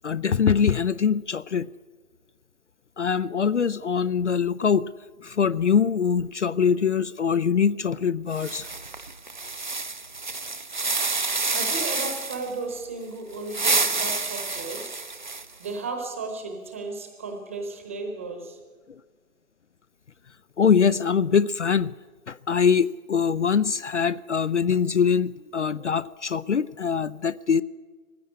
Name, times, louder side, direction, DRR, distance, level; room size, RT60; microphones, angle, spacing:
voice 1, 0.0-1.7 3.0-4.9 5.2-8.7 20.6-21.9 22.3-27.6, left 6 dB, 55° left, 18 dB, 0.5 m, -23 dB
sound 1, 8.3-12.5 13.3-15.7, right 3 dB, 35° right, 0.6 m, -28 dB
voice 2, 11.4-15.1 15.6-18.6, right 3 dB, 10° right, 4 dB, 1.0 m, -34 dB
18.5 x 15.5 x 9.6 m, 1.4 s
figure-of-eight pair, 165°, 42 cm